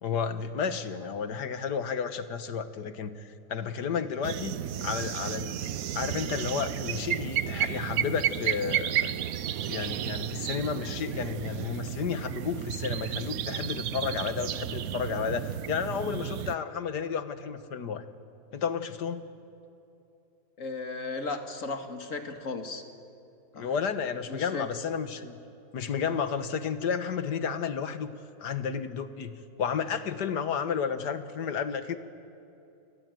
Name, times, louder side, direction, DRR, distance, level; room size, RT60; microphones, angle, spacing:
voice 1, 0.0-5.6 5.9-9.1 9.7-18.0 18.5-19.2 23.5-25.4 25.7-28.1 28.4-32.0, left 6 dB, 90° left, 11 dB, 1.9 m, -32 dB
sound 1, 4.2-16.5, right 10 dB, 65° right, 1.2 m, -32 dB
voice 2, 20.6-22.8 23.5-23.7 24.3-24.7, left 3 dB, 55° left, 7 dB, 2.3 m, -35 dB
28.5 x 21.5 x 9.3 m, 2.8 s
omnidirectional pair, 1.7 m